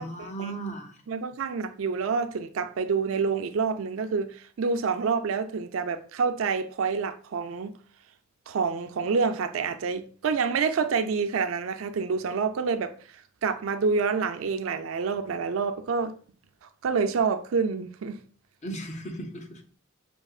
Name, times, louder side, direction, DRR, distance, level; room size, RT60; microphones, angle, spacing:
voice 1, 0.0-1.0 18.6-19.8, right 2 dB, 35° left, 0.6 m, -36 dB
voice 2, 1.1-7.7 8.5-12.9 13.4-16.2 16.8-18.2, right 5 dB, 75° right, 0.4 m, -27 dB
5.2 x 2.8 x 2.3 m
head